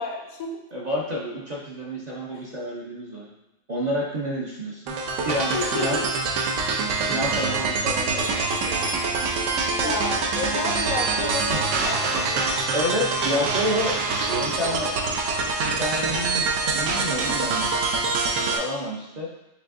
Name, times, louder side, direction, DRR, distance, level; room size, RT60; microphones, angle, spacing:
voice 1, 0.0-0.6 5.5-6.1 9.7-12.4 13.1-13.8 14.4-14.7, left 3 dB, 90° left, 2 dB, 1.2 m, -32 dB
voice 2, 0.7-3.3 3.7-5.0 5.2-6.0 7.1-8.7 9.8-9.9 12.7-14.0 14.3-14.9 15.6-16.5 16.7-17.7 18.4-19.3, equal, 45° right, -4 dB, 0.5 m, -29 dB
sound 1, 4.9-18.6, right 4 dB, 70° right, 0.9 m, -25 dB
6.5 x 2.6 x 2.5 m, 0.96 s
omnidirectional pair, 1.4 m